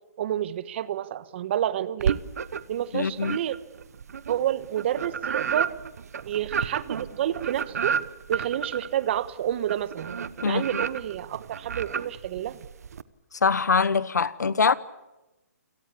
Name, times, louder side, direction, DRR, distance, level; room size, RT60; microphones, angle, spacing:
voice 1, 0.2-2.2 2.7-3.6 4.3-5.7 6.2-8.0 8.3-10.1 10.4-12.6, right 11 dB, 40° right, 1.3 m, -29 dB
sound 1, 2.0-2.8 3.2-13.0, right 7 dB, 65° right, 1.0 m, -31 dB
voice 2, 2.9-3.4 10.4-10.6 13.4-14.7, left 5 dB, 90° left, 1.1 m, -23 dB
28.5 x 18.0 x 8.5 m
hypercardioid pair, 150°, 9 cm